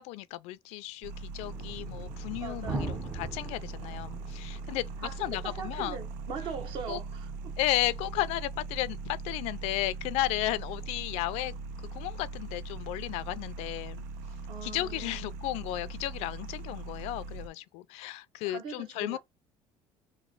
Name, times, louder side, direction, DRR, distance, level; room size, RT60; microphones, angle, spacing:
voice 1, 0.0-6.0 6.9-7.0 7.6-11.6 11.9-14.0 14.6-19.2, left 16 dB, 70° left, 0.4 m, -34 dB
sound 1, 1.0-17.5, right 4 dB, 85° right, 0.5 m, -40 dB
sound 2, 1.4-14.4 15.4-15.5 16.2-16.3 16.6-16.7, right 2 dB, 10° right, 0.5 m, -45 dB
voice 2, 2.4-3.0 5.0-7.5 14.5-15.4 18.4-19.2, right 6 dB, 45° right, 1.0 m, -41 dB
3.1 x 2.5 x 3.8 m
cardioid pair, 170°, 11 cm